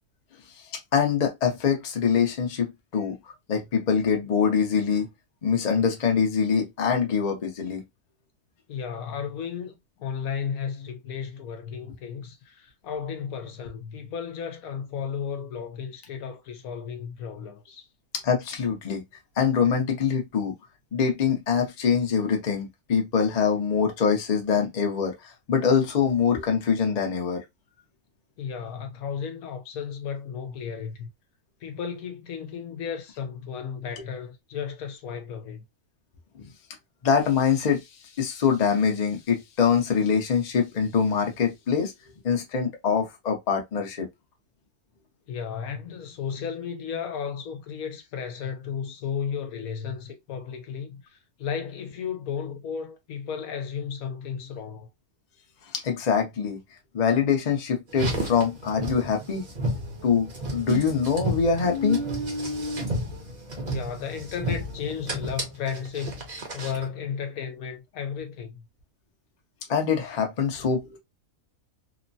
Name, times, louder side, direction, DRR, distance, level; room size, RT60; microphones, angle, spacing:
voice 1, 0.9-5.1 5.4-7.8 18.2-19.0 19.4-20.5 20.9-27.4 36.3-36.4 37.0-37.8 38.2-41.9 42.2-44.1 55.7-56.6 56.9-59.4 60.0-62.1 69.7-71.0, left 6 dB, 40° left, 0.6 m, -24 dB
voice 2, 8.7-17.9 28.4-31.1 31.6-35.6 45.3-54.9 63.7-66.2 66.5-68.7, left 7 dB, 75° left, 1.1 m, -34 dB
Car, 57.9-66.9, right 1 dB, 40° right, 0.7 m, -31 dB
3.0 x 2.1 x 2.6 m
omnidirectional pair, 1.6 m